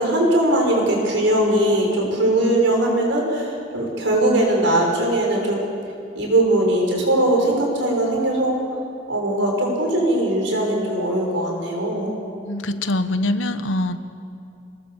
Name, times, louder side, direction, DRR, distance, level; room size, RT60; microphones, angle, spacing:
voice 1, 0.0-5.7 6.1-8.5 9.1-12.1, right 1 dB, 75° right, 0 dB, 6.3 m, -20 dB
voice 2, 12.5-14.0, left 1 dB, 80° left, 10 dB, 1.3 m, -23 dB
26.5 x 20.0 x 7.3 m, 2.6 s
head